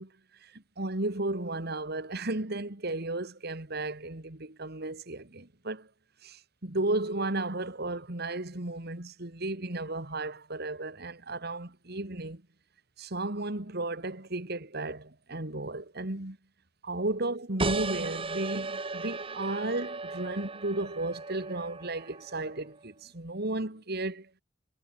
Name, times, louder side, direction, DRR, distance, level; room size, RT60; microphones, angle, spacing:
voice 1, 0.0-5.9 6.2-12.4 13.0-16.4 16.8-24.3, right 2 dB, 55° right, 2.5 m, -34 dB
sound 1, 17.6-22.8, right 3 dB, 30° right, 1.8 m, -36 dB
head